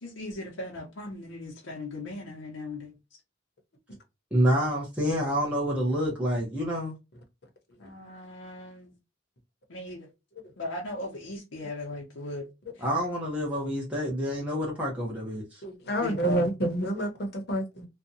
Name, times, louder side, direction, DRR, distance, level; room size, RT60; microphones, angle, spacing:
voice 1, 0.0-2.9 7.8-8.9 9.7-10.1 10.6-12.5 16.0-16.5, left 2 dB, 90° left, 0.7 m, -38 dB
voice 2, 4.3-6.9 12.8-15.6, equal, 5° right, 0.8 m, -28 dB
voice 3, 15.6-17.9, right 1 dB, 55° left, 0.8 m, -29 dB
2.7 x 2.2 x 2.6 m
head